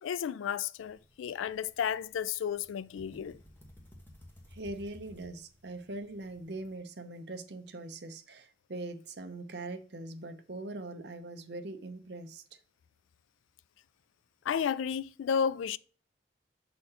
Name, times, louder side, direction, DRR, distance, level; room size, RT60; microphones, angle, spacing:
voice 1, 0.0-3.4 14.5-15.8, left 7 dB, 85° left, 0.3 m, -32 dB
sound 1, 0.8-6.8, left 1 dB, 10° left, 1.2 m, -56 dB
voice 2, 4.5-12.6, right 2 dB, 60° right, 0.8 m, -42 dB
6.6 x 4.2 x 4.2 m
head